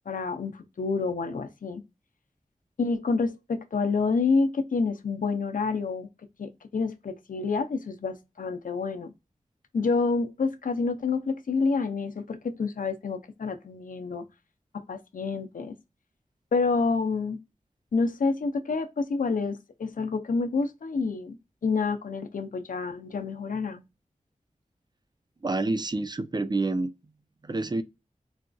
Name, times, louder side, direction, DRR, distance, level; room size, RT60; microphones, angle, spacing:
voice 1, 0.1-1.8 2.8-6.1 6.4-9.1 9.7-14.2 14.7-15.7 16.5-17.4 17.9-21.4 21.6-23.8, left 4 dB, 85° left, 0.5 m, -28 dB
voice 2, 25.4-26.9 27.4-27.8, right 2 dB, 30° right, 0.4 m, -28 dB
4.1 x 2.4 x 2.2 m
wide cardioid pair, 50°, 14 cm